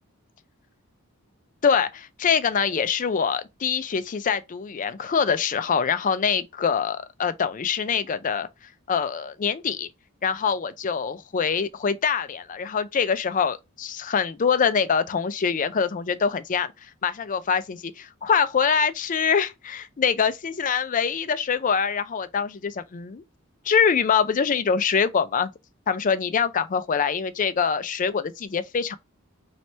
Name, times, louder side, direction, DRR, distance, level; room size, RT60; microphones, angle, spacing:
voice 1, 1.6-8.5 8.9-9.9 10.2-16.7 17.0-23.2 23.7-25.5 25.9-28.9, left 6 dB, 35° left, 0.4 m, -24 dB
3.2 x 2.9 x 4.1 m
head